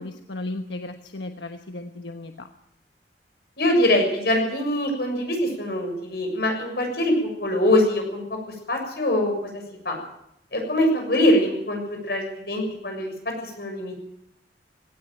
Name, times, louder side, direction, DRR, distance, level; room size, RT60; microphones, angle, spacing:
voice 1, 0.0-2.5, left 2 dB, 90° left, 6 dB, 1.2 m, -35 dB
voice 2, 3.6-8.2 8.7-10.0 10.5-13.1 13.4-14.0, left 1 dB, 65° left, 3 dB, 6.9 m, -23 dB
18.0 x 17.0 x 9.1 m, 0.78 s
head